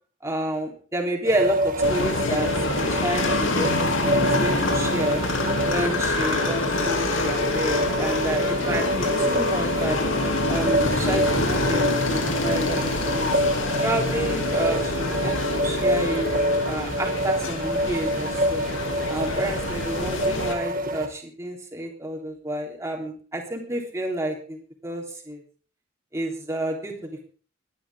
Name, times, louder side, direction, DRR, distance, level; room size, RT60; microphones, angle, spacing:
voice 1, 0.2-2.5 2.9-5.2 5.7-10.0 10.5-12.8 13.1-13.3 13.8-16.3 16.7-18.6 19.1-25.4 26.1-27.2, right 1 dB, 15° right, 0 dB, 3.5 m, -29 dB
sound 1, 1.2-21.1, right 1 dB, 45° right, 2.0 m, -28 dB
sound 2, 1.8-20.5, left 2 dB, 70° left, 2.8 m, -26 dB
22.0 x 11.5 x 3.7 m, 0.41 s
head